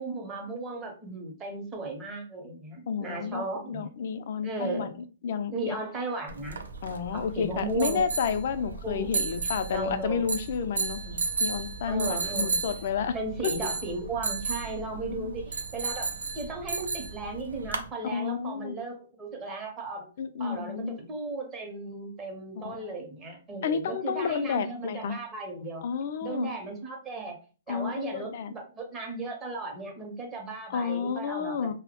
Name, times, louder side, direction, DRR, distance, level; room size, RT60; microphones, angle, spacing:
voice 1, 0.0-3.9 4.4-4.9 5.5-6.6 7.1-8.1 8.8-9.1 9.7-10.3 11.1-11.3 11.9-12.6 13.1-20.1 20.4-25.8 26.2-27.4 27.7-31.7, right 2 dB, 20° right, 1 dB, 0.7 m, -36 dB
voice 2, 2.9-5.0 5.2-5.8 6.8-11.0 11.4-13.2 13.4-13.5 15.1-15.3 18.0-18.7 20.2-21.0 22.6-22.8 23.6-25.1 25.8-26.5 27.7-28.5 30.7-31.7, left 6 dB, 60° left, 11 dB, 0.3 m, -31 dB
sound 1, 6.3-17.9, right 4 dB, 90° right, 0.4 m, -34 dB
2.2 x 2.0 x 2.8 m, 0.36 s
hypercardioid pair, 135°, 0 cm